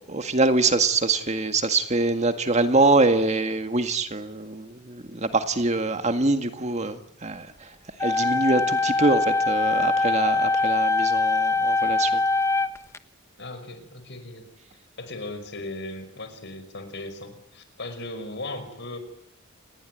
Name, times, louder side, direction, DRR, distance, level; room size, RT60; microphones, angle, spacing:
voice 1, 0.1-12.2, right 3 dB, 35° right, 8 dB, 1.9 m, -24 dB
sound 1, 8.0-13.0, left 3 dB, 15° left, 1.2 m, -23 dB
voice 2, 13.4-14.5 15.0-19.0, left 2 dB, 55° left, 10 dB, 5.4 m, -37 dB
29.5 x 20.0 x 9.3 m, 0.72 s
head